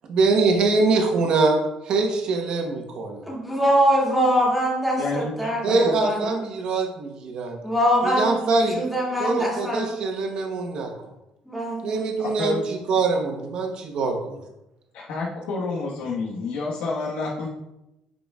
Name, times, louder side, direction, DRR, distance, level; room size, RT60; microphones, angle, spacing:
voice 1, 0.1-3.2 5.6-7.6 8.0-8.8 9.2-10.9 11.8-14.4, right 3 dB, 50° right, 3 dB, 1.2 m, -23 dB
voice 2, 3.3-6.4 7.6-9.9 11.5-12.0, equal, ahead, -5 dB, 2.2 m, -23 dB
voice 3, 5.0-6.2 12.4-12.7 14.9-17.5, left 3 dB, 85° left, -5 dB, 1.4 m, -29 dB
10.5 x 5.1 x 2.4 m, 0.92 s
cardioid pair, 155°, 2 cm